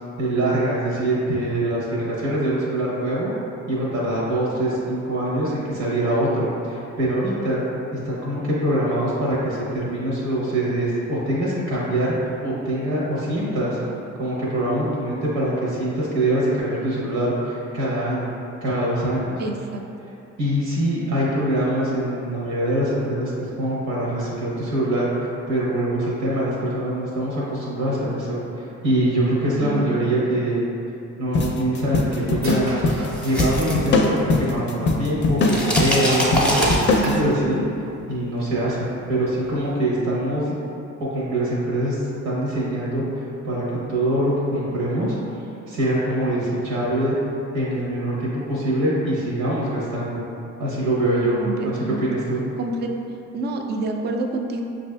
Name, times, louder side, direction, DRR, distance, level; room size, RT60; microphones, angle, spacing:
voice 1, 0.2-3.3 3.7-7.6 8.0-13.8 14.2-18.3 18.6-19.4 20.4-23.3 23.6-30.6 31.2-32.8 33.2-36.7 37.0-37.6 38.1-40.5 41.0-43.0 43.4-45.2 45.7-47.2 47.5-50.2 50.6-51.4 51.6-52.4, right 1 dB, 85° right, -6 dB, 1.0 m, -24 dB
voice 2, 19.4-19.8 29.6-29.8 37.0-37.4 51.4-52.0 52.6-52.9 53.3-54.6, right 2 dB, 35° right, 2 dB, 0.4 m, -28 dB
sound 1, 31.3-37.2, left 3 dB, 40° left, 0.4 m, -22 dB
sound 2, 31.4-33.8 34.7-34.8 35.4-37.4, right 2 dB, 65° right, 0.7 m, -35 dB
sound 3, 32.9-34.6 34.9-37.3, equal, 5° left, 0.7 m, -24 dB
5.5 x 2.5 x 2.2 m, 2.7 s
cardioid pair, 90°, 30 cm